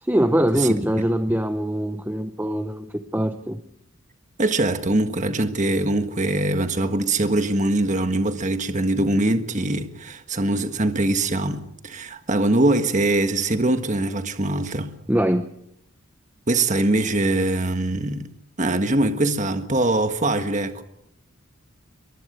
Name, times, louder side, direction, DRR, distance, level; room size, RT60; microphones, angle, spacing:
voice 1, 0.0-3.6 15.1-15.5, equal, 10° right, 0.8 m, -23 dB
voice 2, 4.4-14.9 16.5-18.3 18.6-20.8, right 2 dB, 35° right, 1.5 m, -22 dB
23.5 x 22.5 x 6.8 m
head